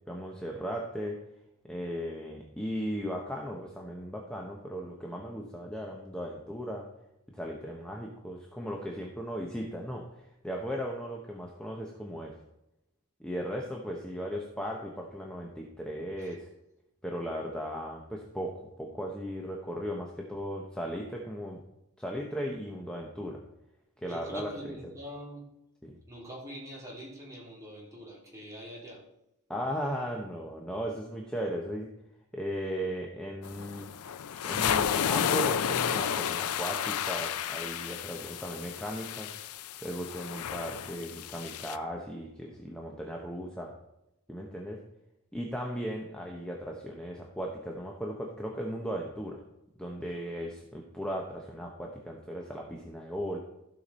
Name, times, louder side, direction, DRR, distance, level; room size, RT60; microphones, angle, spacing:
voice 1, 0.1-1.2 1.6-6.8 7.3-12.3 13.2-16.5 17.0-21.6 22.0-23.4 24.0-24.9 25.8-26.0 29.5-31.9 32.3-33.9 34.4-39.3 39.8-43.7 44.3-44.8 45.3-49.4 49.8-53.4, equal, 5° left, -1 dB, 1.0 m, -37 dB
voice 2, 24.0-25.4 26.1-29.0, right 1 dB, 15° right, -5 dB, 3.5 m, -44 dB
sound 1, 33.4-41.8, left 8 dB, 85° left, 0.5 m, -32 dB
15.0 x 5.9 x 4.3 m, 0.88 s
head